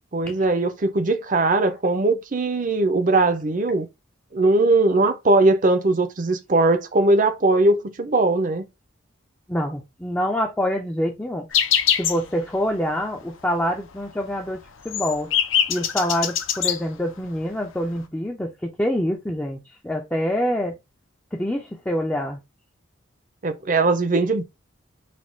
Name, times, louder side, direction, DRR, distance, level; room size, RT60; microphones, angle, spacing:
voice 1, 0.1-3.9 4.3-8.6 23.4-24.4, right 2 dB, 40° right, 0.6 m, -20 dB
voice 2, 9.5-11.5 12.0-14.6 14.8-15.3 15.7-20.8 21.3-22.4, equal, 10° left, 0.5 m, -26 dB
sound 1, 11.5-12.3 12.6-12.7 13.0-13.3 13.6-13.7 14.1-16.8 17.5-17.6 17.8-18.0, left 9 dB, 75° left, 0.6 m, -23 dB
4.2 x 2.3 x 4.4 m
head